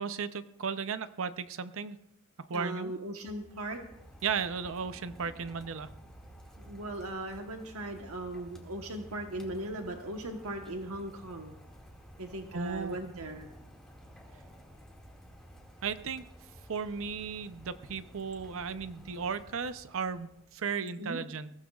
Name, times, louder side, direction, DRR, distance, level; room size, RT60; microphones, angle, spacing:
voice 1, 0.0-2.0 2.4-2.9 4.2-5.9 12.5-13.0 15.8-16.3 16.7-21.5, right 6 dB, 65° right, 12 dB, 0.7 m, -35 dB
voice 2, 2.5-3.8 6.6-11.6 12.2-13.5 21.0-21.2, right 1 dB, 90° right, 3 dB, 1.2 m, -38 dB
Rain, 3.4-20.6, equal, 5° left, 2.1 m, -53 dB
21.5 x 16.0 x 2.4 m, 0.81 s
head